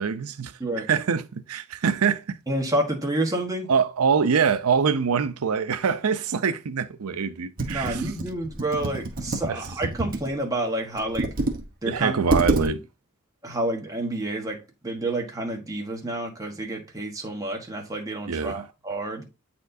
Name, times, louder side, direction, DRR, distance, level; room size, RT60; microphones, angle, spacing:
voice 1, 0.0-2.4 3.7-8.1 9.5-9.6 11.9-12.8 18.3-18.7, right 6 dB, 80° right, 0.6 m, -24 dB
voice 2, 2.5-3.7 7.7-11.3 11.8-12.3 12.6-12.8 13.4-19.3, right 1 dB, 15° right, 1.3 m, -29 dB
Computer keyboard, 7.6-10.3 11.0-11.6 11.9-12.0 12.3-12.7, right 2 dB, 40° right, 1.0 m, -27 dB
8.3 x 4.3 x 2.7 m
head